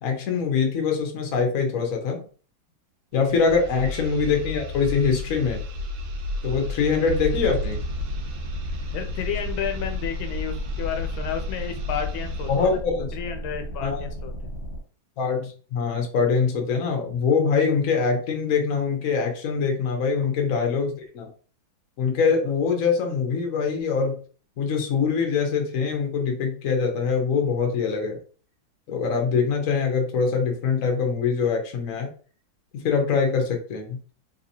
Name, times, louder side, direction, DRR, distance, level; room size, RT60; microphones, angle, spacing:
voice 1, 0.0-2.2 3.1-5.6 6.4-7.8 12.5-13.2 13.8-14.1 15.2-21.3 22.0-24.2 24.6-28.2 28.9-32.1 32.7-34.0, left 5 dB, 55° left, 2 dB, 1.0 m, -23 dB
sound 1, 3.2-12.8, left 3 dB, 75° right, 1.3 m, -33 dB
sound 2, 7.0-14.8, right 1 dB, 30° left, 1.5 m, -34 dB
voice 2, 8.9-12.8 13.1-13.9 14.2-14.6, left 8 dB, 85° left, 6 dB, 1.4 m, -31 dB
3.4 x 2.8 x 2.7 m, 0.40 s
omnidirectional pair, 2.2 m